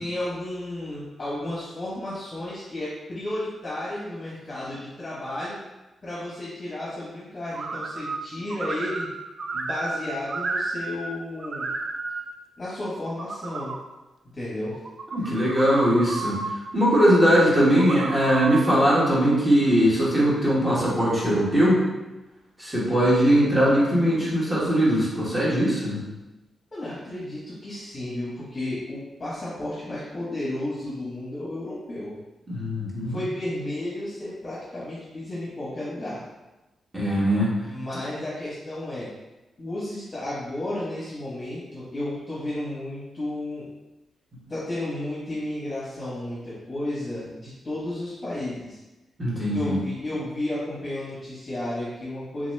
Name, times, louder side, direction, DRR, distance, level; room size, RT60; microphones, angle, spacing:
voice 1, 0.0-5.6 6.0-9.1 9.5-11.7 12.6-13.7 14.3-14.7 26.7-32.1 33.1-36.3 37.6-39.1 39.6-43.7 44.5-48.8 49.5-52.5, left 1 dB, 25° left, -8 dB, 0.9 m, -32 dB
sound 1, 7.5-8.2 8.5-11.1 11.4-12.3 12.8-13.8 14.7-16.6 17.7-18.8, right 3 dB, 50° right, 0.3 m, -32 dB
voice 2, 15.1-16.4 16.7-21.8 22.6-26.0 32.5-33.2 36.9-37.5 49.2-49.8, equal, 15° right, -7 dB, 1.2 m, -20 dB
3.6 x 2.9 x 3.2 m, 1.0 s
wide cardioid pair, 145°, 0 cm